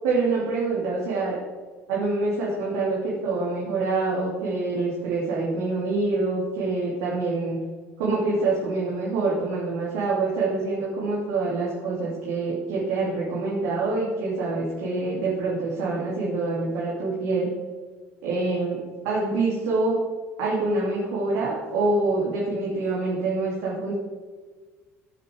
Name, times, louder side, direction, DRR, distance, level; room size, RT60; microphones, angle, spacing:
voice 1, 0.0-1.4 1.9-7.6 8.0-17.5 18.2-18.8 19.0-20.0 20.4-23.9, right 3 dB, 65° right, -6 dB, 2.8 m, -26 dB
16.5 x 7.6 x 3.5 m, 1.4 s
figure-of-eight pair, 60°, 7 cm